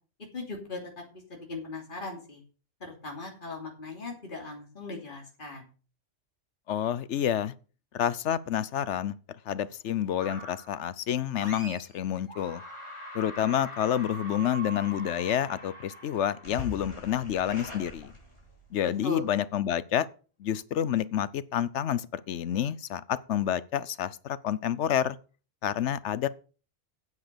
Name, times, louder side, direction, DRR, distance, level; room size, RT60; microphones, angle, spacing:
voice 1, 0.3-2.4 2.8-5.7 18.8-19.2, left 3 dB, 45° left, 3.1 m, -38 dB
voice 2, 6.7-7.5 7.9-9.2 9.5-12.6 13.1-18.1 18.7-20.1 20.4-25.2 25.6-26.3, left 10 dB, 75° left, 1.0 m, -29 dB
sound 1, 10.2-10.8 11.3-12.0 12.3-18.7, left 1 dB, 25° left, 3.5 m, -43 dB
9.5 x 7.6 x 6.8 m
omnidirectional pair, 1.2 m